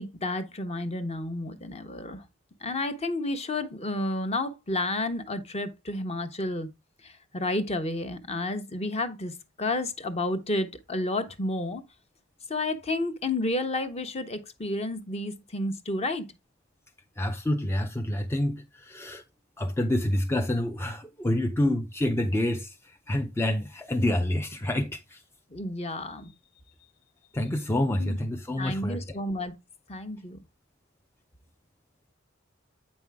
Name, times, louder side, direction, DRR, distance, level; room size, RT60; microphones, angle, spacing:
voice 1, 0.0-2.2 2.6-6.7 7.0-11.8 12.5-16.3 25.5-26.3 28.0-28.2 28.6-29.5 29.9-30.4, left 2 dB, 30° left, 0.9 m, -31 dB
voice 2, 17.2-19.2 19.6-25.2 27.3-29.2, left 1 dB, 10° left, 0.5 m, -28 dB
8.3 x 5.4 x 3.4 m
head